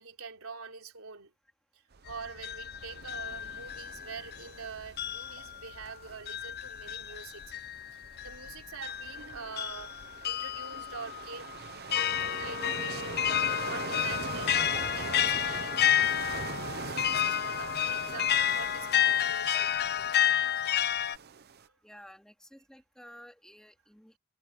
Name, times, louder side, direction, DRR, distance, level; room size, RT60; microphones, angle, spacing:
voice 1, 0.0-1.3 1.7-7.4 8.2-13.2 13.5-16.2 16.8-19.9 21.6-21.8, right 5 dB, 75° right, 4.0 m, -45 dB
sound 1, 1.9-21.7, right 5 dB, 50° right, 0.7 m, -43 dB
sound 2, 2.1-4.6 5.0-21.2, left 10 dB, 50° left, 0.5 m, -31 dB
voice 2, 21.8-24.2, equal, 5° left, 2.8 m, -53 dB
head